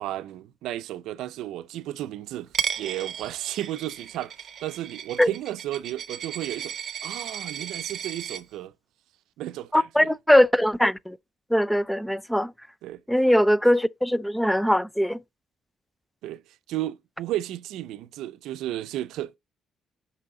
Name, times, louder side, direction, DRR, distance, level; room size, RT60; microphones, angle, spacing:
voice 1, 0.0-2.5 2.8-6.8 7.0-8.7 9.4-10.1 12.8-13.0 16.2-16.4 16.7-19.4, right 14 dB, 90° right, 0.5 m, -33 dB
Coin (dropping), 2.5-8.4, right 8 dB, 60° right, 0.7 m, -35 dB
voice 2, 9.7-11.2 11.5-12.5 13.1-15.2, equal, 5° left, 0.4 m, -21 dB
6.7 x 5.5 x 3.8 m
cardioid pair, 90°, 0 cm